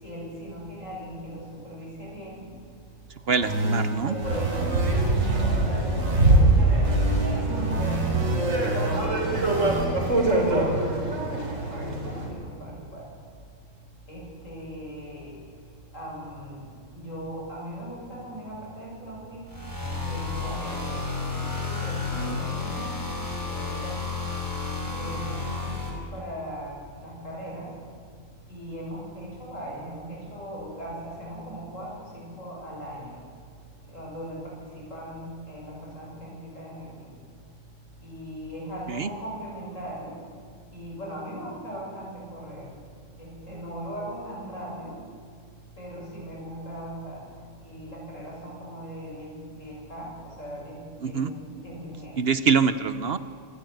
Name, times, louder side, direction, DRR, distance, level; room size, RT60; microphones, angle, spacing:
voice 1, 0.0-2.4 3.3-3.6 4.1-5.4 6.1-8.3 8.8-10.3 10.6-13.0 14.1-15.3 15.9-16.6 16.9-19.4 20.0-20.8 21.2-22.9 23.5-24.0 24.7-26.7 27.0-27.7 28.5-33.1 33.9-37.1 38.0-40.1 40.7-42.7 43.2-45.0 45.8-47.2 47.6-49.3 49.6-50.1 50.4-50.8 51.0-52.1, equal, 70° left, -3 dB, 7.3 m, -39 dB
voice 2, 3.3-4.2 22.1-22.4 38.9-39.1 51.0-51.3 52.2-53.2, right 5 dB, 55° right, 13 dB, 0.9 m, -24 dB
sound 1, 3.4-6.4 6.8-9.8, right 1 dB, 85° right, 3.4 m, -29 dB
sound 2, 4.2-12.3, right 2 dB, 70° right, 4.5 m, -23 dB
sound 3, 19.5-25.9, left 4 dB, 15° left, 4.4 m, -31 dB
25.5 x 14.0 x 9.4 m, 2.2 s
omnidirectional pair, 1.4 m